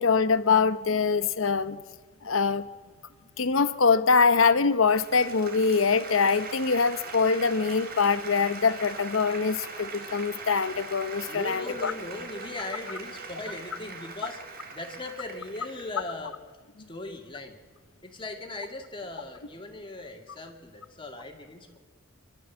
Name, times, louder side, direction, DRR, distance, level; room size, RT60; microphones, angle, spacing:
voice 1, 0.0-1.8 2.2-2.7 3.4-11.9, left 5 dB, 85° left, 13 dB, 0.9 m, -24 dB
Applause, 4.5-16.0, right 4 dB, 50° right, 3.9 m, -42 dB
voice 2, 11.3-14.4 14.7-16.4 16.9-17.6 18.0-21.8, left 2 dB, 25° left, 3 dB, 2.4 m, -38 dB
28.5 x 12.5 x 7.4 m, 1.5 s
head